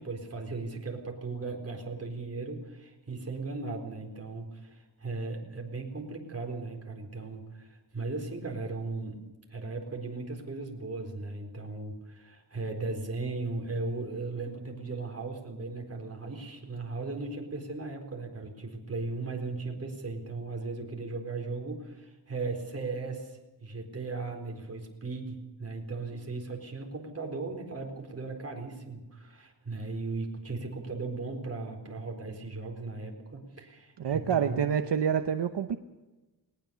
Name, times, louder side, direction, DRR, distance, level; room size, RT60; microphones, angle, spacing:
voice 1, 0.0-9.2 9.5-34.6, right 3 dB, 35° right, 1 dB, 4.2 m, -37 dB
voice 2, 34.0-35.8, right 8 dB, 75° right, 8 dB, 1.0 m, -27 dB
20.0 x 20.0 x 7.0 m, 1.1 s
wide cardioid pair, 160°, 42 cm